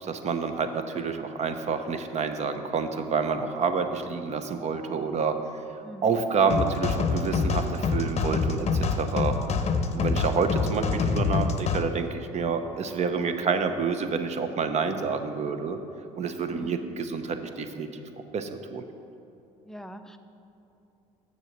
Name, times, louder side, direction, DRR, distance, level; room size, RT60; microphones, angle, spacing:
voice 1, 0.0-5.4 6.0-9.4 9.9-15.8 16.1-17.9 18.3-18.8, right 5 dB, 45° right, 8 dB, 0.8 m, -28 dB
voice 2, 5.8-6.1 16.5-16.9 19.7-20.2, right 1 dB, 5° left, 7 dB, 0.6 m, -42 dB
sound 1, 6.5-11.8, left 4 dB, 40° left, 0.7 m, -26 dB
7.5 x 6.7 x 6.0 m, 2.9 s
hypercardioid pair, 75°, 17 cm